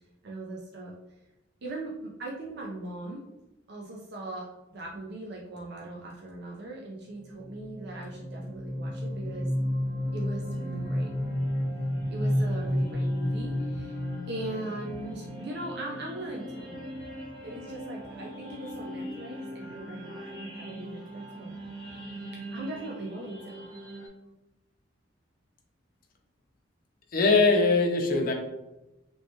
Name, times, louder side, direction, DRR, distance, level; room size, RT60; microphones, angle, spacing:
voice 1, 0.2-0.9 1.6-3.2 3.7-9.5 10.1-11.1 12.1-14.0 14.3-17.0 17.4-21.5 22.3-23.7, right 2 dB, 60° right, -2 dB, 0.5 m, -40 dB
sound 1, 7.3-24.1, equal, 25° right, 1.0 m, -34 dB
voice 2, 27.1-28.3, left 3 dB, 50° left, 3 dB, 0.6 m, -21 dB
3.2 x 3.0 x 2.8 m, 0.96 s
head